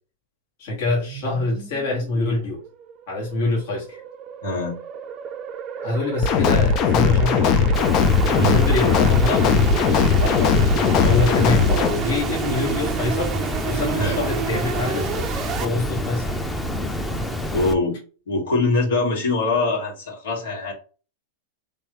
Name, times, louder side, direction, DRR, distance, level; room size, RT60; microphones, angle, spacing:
voice 1, 0.6-2.6 3.1-4.0 5.8-7.8 8.2-13.3 13.6-15.3 15.6-16.4, left 2 dB, 60° left, -3 dB, 1.5 m, -25 dB
sound 1, 0.9-15.7, right 8 dB, 35° right, 0.5 m, -31 dB
voice 2, 4.4-4.7 8.3-8.6 10.9-11.1 13.7-14.2 17.5-18.0 18.3-20.7, left 2 dB, 80° left, -2 dB, 1.8 m, -23 dB
sound 2, 6.2-11.9, left 6 dB, 45° left, 0.6 m, -18 dB
Water, 7.7-17.7, equal, 5° left, 0.7 m, -27 dB
3.4 x 3.3 x 3.0 m, 0.35 s
hypercardioid pair, 105°, 0 cm